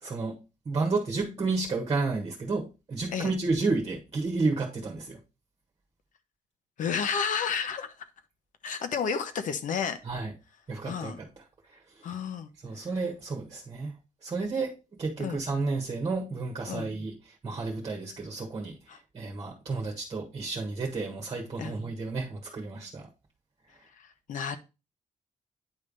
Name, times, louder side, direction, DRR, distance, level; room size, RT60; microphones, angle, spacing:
voice 1, 0.0-5.2 10.0-10.3 10.7-11.3 11.7-11.8 12.6-13.9 14.2-17.2 17.4-23.1, right 3 dB, 30° right, 1.4 m, -31 dB
voice 2, 6.8-8.0 8.6-10.0 10.8-11.2 12.0-12.5 15.2-15.4 16.7-16.9 18.9-19.0 21.6-21.7 23.9-24.6, left 6 dB, 75° left, 0.9 m, -31 dB
9.3 x 3.4 x 5.3 m
wide cardioid pair, 175°, 13 cm